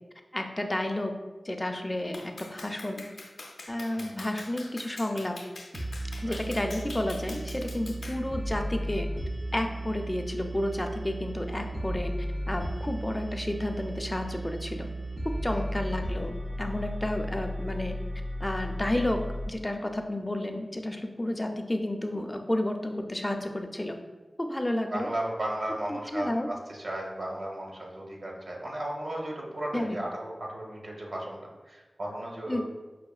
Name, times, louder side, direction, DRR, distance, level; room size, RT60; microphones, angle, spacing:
voice 1, 0.3-1.1 1.4-3.1 3.7-5.3 6.2-9.1 9.5-12.1 12.5-14.9 15.4-16.3 16.6-17.9 18.4-24.0 24.4-25.1 25.9-26.5 29.7-30.0 32.5-32.6, left 1 dB, 20° left, 4 dB, 0.4 m, -31 dB
Clapping, 2.1-8.3, left 2 dB, 85° left, 0.4 m, -45 dB
sound 1, 5.7-19.5, right 1 dB, 45° right, 0.4 m, -35 dB
voice 2, 24.9-32.6, right 1 dB, 70° right, -1 dB, 0.8 m, -35 dB
5.6 x 2.6 x 2.3 m, 1.2 s
wide cardioid pair, 65°, 0 cm